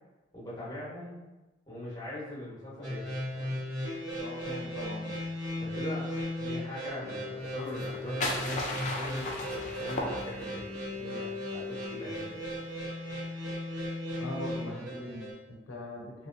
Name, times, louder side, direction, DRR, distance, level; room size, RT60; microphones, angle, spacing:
voice 1, 0.3-1.2 1.7-3.6 5.6-12.6, left 1 dB, 20° left, -8 dB, 1.0 m, -41 dB
sound 1, 2.8-15.3, left 1 dB, 70° right, 1.0 m, -36 dB
voice 2, 4.2-5.2 14.2-16.3, left 1 dB, 85° left, -2 dB, 0.6 m, -40 dB
sound 2, 7.7-10.7, left 1 dB, 35° left, 0.4 m, -35 dB
3.0 x 2.7 x 2.5 m, 1.1 s
head